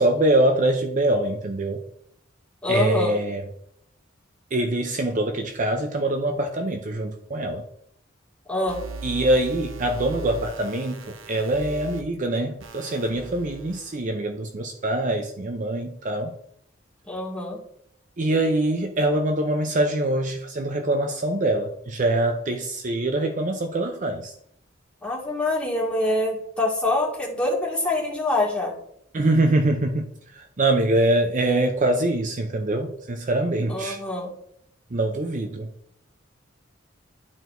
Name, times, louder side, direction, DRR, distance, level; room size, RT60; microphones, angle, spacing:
voice 1, 0.0-1.8 2.7-3.4 4.5-7.6 9.0-16.3 18.2-24.3 29.1-34.0 34.9-35.7, right 1 dB, 40° right, 5 dB, 0.6 m, -24 dB
voice 2, 2.6-3.2 8.5-8.9 17.1-17.6 25.0-28.8 33.7-34.3, left 2 dB, 5° left, -4 dB, 2.1 m, -25 dB
sound 1, 8.7-12.0 12.6-13.9, right 4 dB, 75° right, 0.9 m, -38 dB
12.0 x 4.6 x 2.6 m, 0.72 s
head